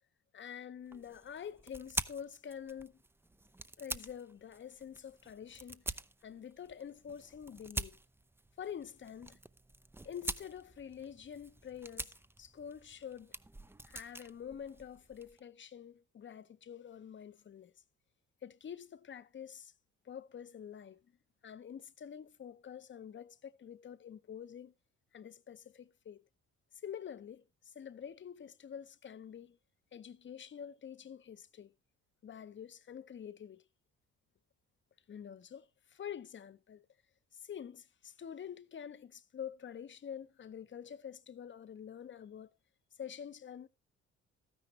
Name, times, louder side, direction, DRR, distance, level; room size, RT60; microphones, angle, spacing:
voice 1, 0.3-3.0 3.8-6.0 6.2-8.0 8.6-9.4 10.0-13.3 13.8-17.7 18.4-19.7 20.0-21.0 21.4-24.7 25.1-26.2 26.8-29.6 29.9-31.7 32.2-33.6 35.1-36.9 37.3-42.6 43.0-43.7, left 8 dB, 40° left, 0.7 m, -47 dB
sound 1, 0.9-15.4, right 2 dB, 10° right, 0.5 m, -46 dB
12.5 x 9.9 x 3.1 m
cardioid pair, 90°, 30 cm